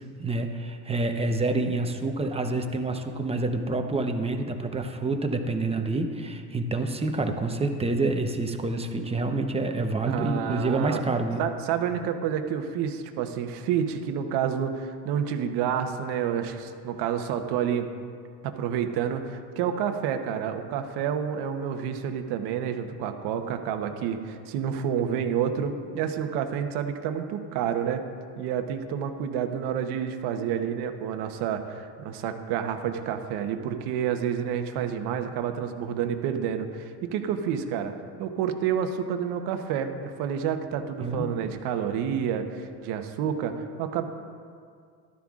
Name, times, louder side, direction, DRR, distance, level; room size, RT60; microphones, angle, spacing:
voice 1, 0.0-11.4 41.0-41.3, right 2 dB, 15° right, 5 dB, 0.9 m, -28 dB
voice 2, 10.1-11.0 11.4-17.9 18.4-28.0 28.4-37.9 38.2-44.0, right 8 dB, 75° right, 7 dB, 1.1 m, -29 dB
14.5 x 12.5 x 2.5 m, 2.2 s
supercardioid pair, 110°, 40 cm